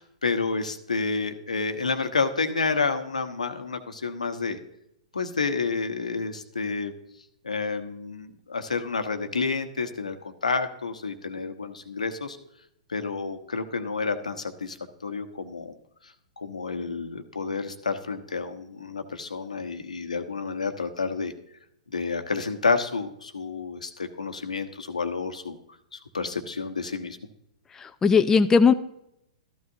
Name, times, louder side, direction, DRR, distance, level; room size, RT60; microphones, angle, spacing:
voice 1, 0.0-4.6 5.1-6.9 7.4-12.4 12.9-14.8 15.0-15.7 16.4-21.3 21.9-25.6 25.9-27.2, left 4 dB, 85° left, 8 dB, 1.1 m, -29 dB
voice 2, 27.8-28.7, left 5 dB, 15° left, 9 dB, 0.4 m, -18 dB
13.5 x 12.5 x 2.7 m, 0.78 s
figure-of-eight pair, 115°, 4 cm